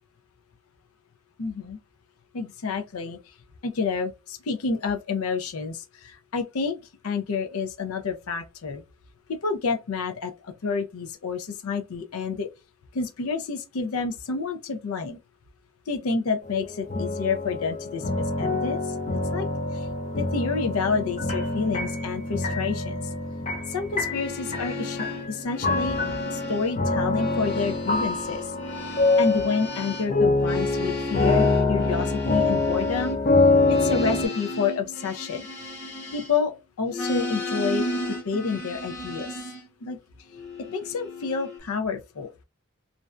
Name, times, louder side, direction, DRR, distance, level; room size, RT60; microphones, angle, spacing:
voice 1, 1.4-1.8 2.3-3.2 3.6-6.8 7.0-8.8 9.3-12.5 12.9-15.2 15.9-18.8 19.3-19.5 19.7-19.9 20.2-23.1 23.7-26.0 26.3-28.4 29.2-33.2 33.7-35.5 36.1-36.5 36.8-37.8 38.2-39.4 39.8-40.0 40.7-42.3, left 5 dB, 85° left, 0.5 m, -29 dB
sound 1, 16.4-34.3, left 3 dB, 30° left, 0.5 m, -25 dB
sound 2, 24.0-26.8 27.0-36.5 36.9-39.7 40.3-41.6, left 1 dB, 50° left, 1.0 m, -35 dB
2.5 x 2.1 x 2.3 m
head